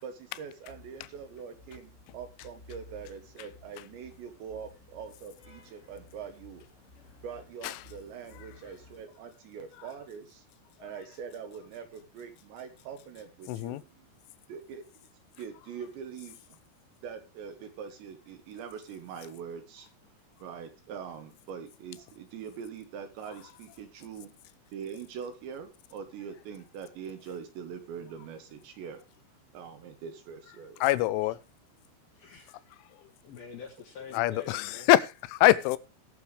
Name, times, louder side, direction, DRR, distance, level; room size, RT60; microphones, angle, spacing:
voice 1, 0.0-6.6 7.2-10.4 10.8-14.1 14.5-14.8 15.4-16.5 17.0-19.9 20.4-24.3 24.7-29.0 29.5-31.2, right 7 dB, 70° right, 3.0 m, -43 dB
sound 1, 0.7-9.0, left 3 dB, 35° left, 1.2 m, -55 dB
voice 2, 13.5-13.8 30.8-31.4 34.1-35.8, left 16 dB, 80° left, 2.9 m, -24 dB
voice 3, 32.1-32.6 33.2-34.9, left 6 dB, 65° left, 2.6 m, -45 dB
20.5 x 6.9 x 3.2 m
omnidirectional pair, 5.9 m